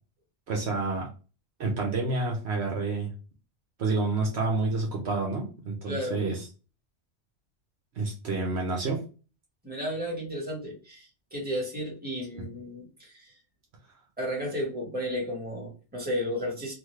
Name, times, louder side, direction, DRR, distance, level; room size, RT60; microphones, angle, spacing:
voice 1, 0.5-1.1 1.6-3.1 3.8-6.4 8.0-9.0, right 3 dB, 65° right, 0 dB, 1.0 m, -29 dB
voice 2, 5.8-6.2 9.6-13.3 14.2-16.7, equal, 10° right, -4 dB, 1.3 m, -33 dB
3.1 x 2.2 x 3.1 m, 0.34 s
omnidirectional pair, 1.2 m